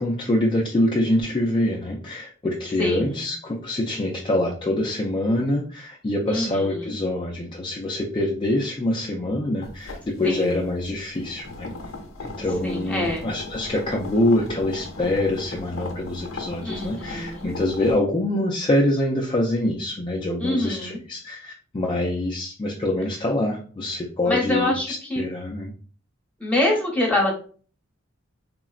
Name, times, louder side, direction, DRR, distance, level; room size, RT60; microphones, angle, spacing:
voice 1, 0.0-11.7 12.2-25.7, left 1 dB, 25° left, -2 dB, 0.4 m, -25 dB
voice 2, 2.8-3.2 6.3-6.9 10.2-10.4 12.6-13.3 16.6-17.5 20.4-21.0 24.3-25.2 26.4-27.3, left 1 dB, 5° left, -2 dB, 0.8 m, -25 dB
sound 1, 9.6-18.0, left 3 dB, 75° left, 0.6 m, -37 dB
3.7 x 2.1 x 2.3 m, 0.41 s
head